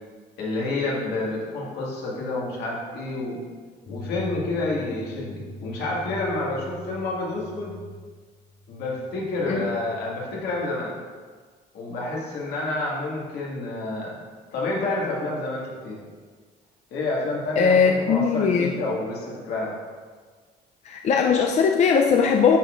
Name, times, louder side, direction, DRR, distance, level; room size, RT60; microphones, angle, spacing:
voice 1, 0.4-3.4 3.9-7.7 8.7-11.0 11.7-14.2 14.5-16.0 16.9-19.8, left 2 dB, 75° left, -4 dB, 1.9 m, -29 dB
sound 1, 3.8-10.7, left 1 dB, 25° left, 0.9 m, -42 dB
voice 2, 17.6-18.8 20.9-22.6, left 6 dB, 40° left, 2 dB, 0.4 m, -19 dB
11.0 x 4.1 x 2.5 m, 1.5 s
cardioid pair, 110°, 17 cm